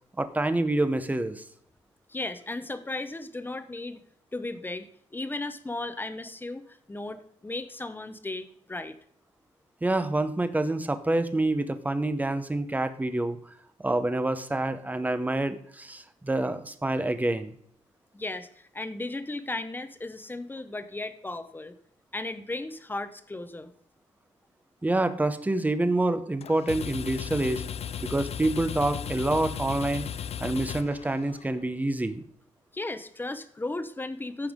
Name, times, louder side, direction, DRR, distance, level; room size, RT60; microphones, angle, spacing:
voice 1, 0.2-1.4 9.8-13.4 13.8-17.6 24.8-27.6 28.0-30.1 30.4-32.2, right 2 dB, 10° right, 11 dB, 0.8 m, -27 dB
voice 2, 2.1-4.0 4.3-6.6 6.9-8.9 18.1-21.7 22.1-23.7 32.7-34.5, left 2 dB, 15° left, 11 dB, 0.9 m, -35 dB
sound 1, 26.4-31.6, left 8 dB, 50° left, 0.5 m, -36 dB
14.5 x 5.6 x 3.6 m, 0.67 s
wide cardioid pair, 125°, 13 cm